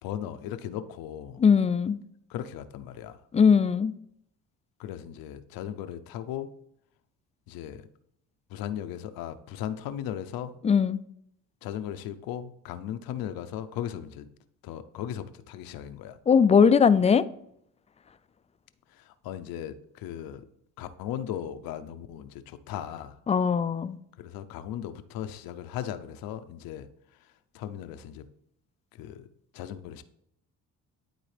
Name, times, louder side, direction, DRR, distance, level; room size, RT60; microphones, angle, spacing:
voice 1, 0.0-1.4 2.3-3.2 4.8-6.5 7.5-7.9 8.5-10.5 11.6-14.3 14.6-16.2 18.9-20.5 20.8-23.1 24.2-26.9 27.5-28.3 29.0-29.3 29.5-30.0, left 10 dB, 85° left, 0.6 m, -37 dB
voice 2, 1.4-2.0 3.3-3.9 10.6-11.0 16.3-17.2 23.3-24.0, left 6 dB, 20° left, 0.3 m, -20 dB
11.5 x 4.0 x 3.3 m
cardioid pair, 95°, 34 cm